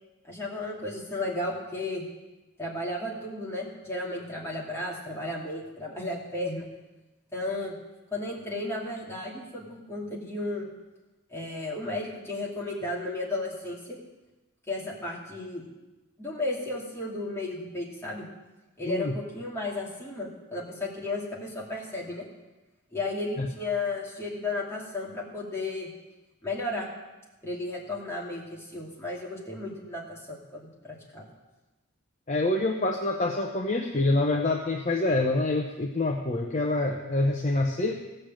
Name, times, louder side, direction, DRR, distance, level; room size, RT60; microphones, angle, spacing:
voice 1, 0.3-2.0 2.6-6.6 7.3-7.7 8.1-10.7 11.3-14.0 14.7-15.6 16.2-18.2 18.8-22.2 22.9-25.9 26.4-26.9 27.4-31.3, left 2 dB, 10° left, -4 dB, 2.6 m, -34 dB
voice 2, 32.3-37.9, left 2 dB, 35° left, 2 dB, 0.7 m, -26 dB
16.0 x 6.7 x 7.6 m, 1.1 s
head